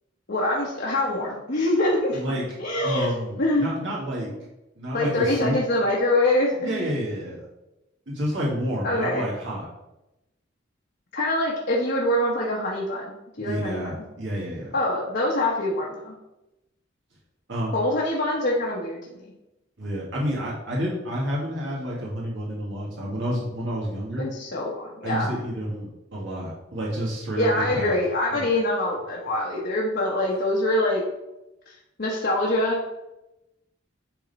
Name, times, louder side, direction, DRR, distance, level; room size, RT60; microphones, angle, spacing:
voice 1, 0.3-2.2 2.6-3.7 4.9-6.9 8.8-9.2 11.1-13.9 14.7-16.1 17.7-19.0 19.3-19.4 24.2-25.4 27.3-31.0 31.7-32.8, left 1 dB, 60° left, -4 dB, 1.1 m, -24 dB
voice 2, 2.1-2.4 2.8-4.3 4.8-5.6 6.6-7.4 8.1-9.7 13.4-14.7 17.5-17.8 19.8-24.3 25.0-28.0 28.3-28.5, equal, 70° right, -5 dB, 1.9 m, -29 dB
9.9 x 3.7 x 4.1 m, 0.95 s
head